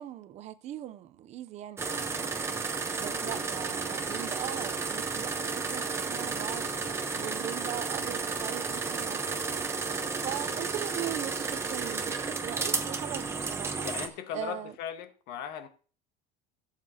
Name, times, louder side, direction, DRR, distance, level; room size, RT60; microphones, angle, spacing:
voice 1, 0.0-1.8 3.0-6.7 7.1-9.6 9.9-13.9 14.3-14.7, right 12 dB, 35° right, 0.6 m, -40 dB
sound 1, 1.8-14.1, right 4 dB, 15° right, 0.9 m, -32 dB
voice 2, 3.1-3.5 13.8-15.7, left 9 dB, 55° left, 1.4 m, -38 dB
16.0 x 7.5 x 2.9 m
cardioid pair, 155°, 19 cm